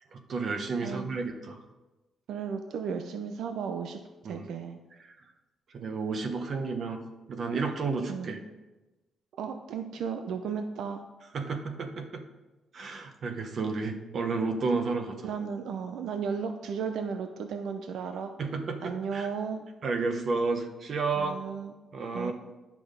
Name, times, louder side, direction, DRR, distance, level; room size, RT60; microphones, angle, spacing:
voice 1, 0.1-1.6 4.2-4.4 5.7-7.0 7.3-8.4 11.3-12.2 12.7-15.2 18.4-19.3 19.8-21.4 21.9-22.3, right 4 dB, 45° right, 6 dB, 1.1 m, -31 dB
voice 2, 2.3-4.8 8.1-8.3 9.4-11.0 15.2-18.3 18.8-19.7 21.1-21.7 22.1-22.3, right 6 dB, 75° right, 6 dB, 0.6 m, -34 dB
11.0 x 6.1 x 5.1 m, 1.1 s
cardioid pair, 160°, 0 cm